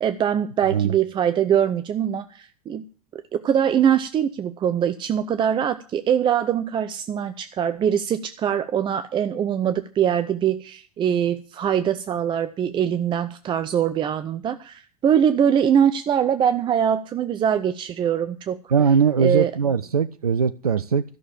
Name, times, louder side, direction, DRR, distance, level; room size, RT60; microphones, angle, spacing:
voice 1, 0.0-2.8 3.1-18.6 19.2-19.5, right 9 dB, 25° right, 0.6 m, -22 dB
voice 2, 18.7-21.0, right 6 dB, 80° right, 0.5 m, -20 dB
13.0 x 6.5 x 8.5 m
figure-of-eight pair, 80°, 19 cm